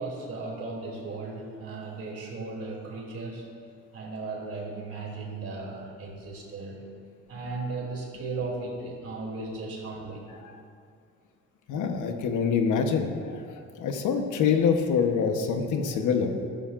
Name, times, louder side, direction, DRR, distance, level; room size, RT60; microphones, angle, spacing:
voice 1, 0.0-3.4 3.9-6.8 7.3-10.3, right 3 dB, 50° right, -2 dB, 3.1 m, -36 dB
voice 2, 11.7-13.4 13.8-16.3, left 6 dB, 85° left, 4 dB, 1.2 m, -25 dB
13.5 x 13.0 x 2.6 m, 2.3 s
cardioid pair, 110°, 30 cm